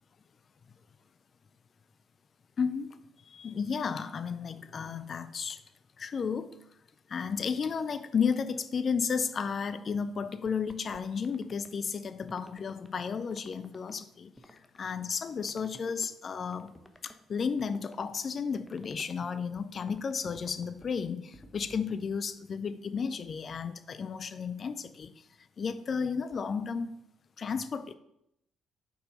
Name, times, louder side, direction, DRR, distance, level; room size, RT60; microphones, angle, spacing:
voice 1, 2.6-2.9 3.3-5.6 6.0-6.5 7.1-16.8 17.0-25.1 25.6-27.0 27.4-27.9, left 6 dB, 45° left, 0.5 m, -33 dB
sound 1, 10.5-11.7 12.2-12.9 13.3-13.9 14.4-14.9 15.4-16.1 16.5-17.2 17.6-18.2 18.7-19.3 19.7-22.2, left 1 dB, 10° left, 0.9 m, -53 dB
5.4 x 4.4 x 5.0 m
hypercardioid pair, 45°, 0 cm